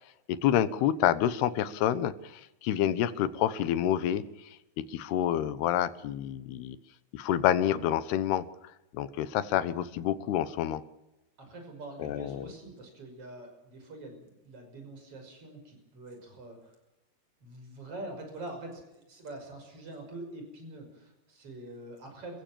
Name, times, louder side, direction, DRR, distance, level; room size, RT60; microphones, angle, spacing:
voice 1, 0.3-4.3 4.8-6.8 7.1-8.4 8.9-10.8 12.0-12.5, left 11 dB, 80° left, 14 dB, 3.1 m, -28 dB
voice 2, 11.4-16.7 17.4-22.4, right 2 dB, 35° right, 4 dB, 6.5 m, -45 dB
25.5 x 15.5 x 7.5 m, 0.93 s
omnidirectional pair, 4.7 m